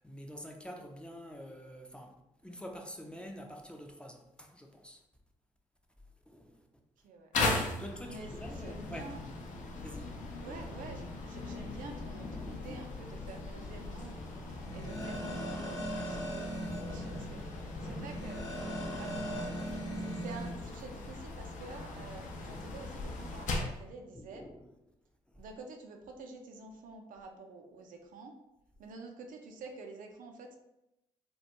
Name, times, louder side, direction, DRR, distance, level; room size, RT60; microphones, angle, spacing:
voice 1, 0.0-2.1 2.4-5.0 6.3-6.7 7.8-9.1 9.8-10.1 24.1-24.7 25.3-25.4, equal, 5° left, 2 dB, 0.5 m, -47 dB
sound 1, 7.3-23.8, left 2 dB, 60° left, 0.6 m, -39 dB
voice 2, 8.0-9.2 10.4-14.1 14.7-18.5 19.0-19.7 20.0-24.4 25.4-28.3 28.8-30.6, right 3 dB, 65° right, 3 dB, 0.4 m, -48 dB
sound 2, 13.6-20.5, right 1 dB, 25° left, 0.9 m, -40 dB
2.4 x 2.2 x 2.8 m, 0.87 s
hypercardioid pair, 45°, 15 cm